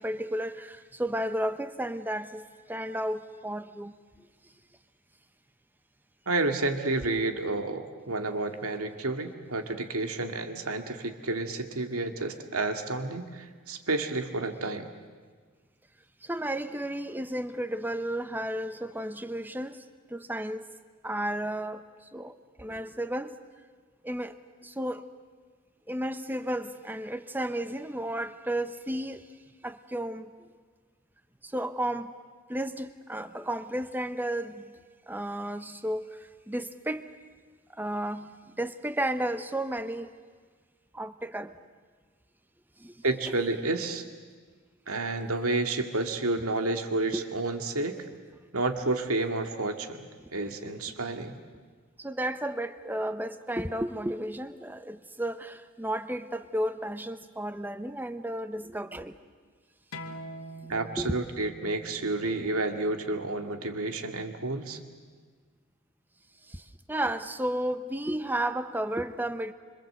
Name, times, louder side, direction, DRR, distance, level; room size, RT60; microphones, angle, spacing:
voice 1, 0.0-3.9 16.2-20.7 21.0-23.4 24.0-24.4 24.6-25.1 25.9-29.3 29.6-30.3 31.4-32.1 32.5-34.8 35.1-37.1 37.8-40.1 40.9-41.6 42.8-43.0 47.1-47.3 50.2-50.3 52.0-59.2 60.7-61.3 66.4-69.5, right 1 dB, 10° right, 0.8 m, -33 dB
voice 2, 6.3-14.9 43.0-44.0 44.9-47.9 48.5-50.1 50.3-51.4 60.7-64.8, right 2 dB, 85° right, 2.2 m, -30 dB
sound 1, 59.9-65.1, right 1 dB, 90° left, 2.4 m, -46 dB
26.0 x 25.5 x 7.9 m
head